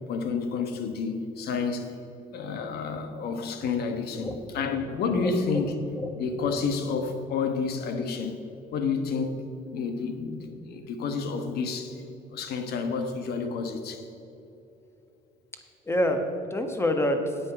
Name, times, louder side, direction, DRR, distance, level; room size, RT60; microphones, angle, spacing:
voice 1, 0.1-1.9 2.3-5.7 6.2-8.3 8.7-9.4 9.7-12.0 12.3-14.0, left 5 dB, 70° left, 7 dB, 1.3 m, -30 dB
voice 2, 4.1-4.7 5.2-5.3 5.6-6.1 15.8-17.4, left 1 dB, 15° left, 5 dB, 1.3 m, -28 dB
9.3 x 8.5 x 5.9 m, 2.9 s
cardioid pair, 110°, 17 cm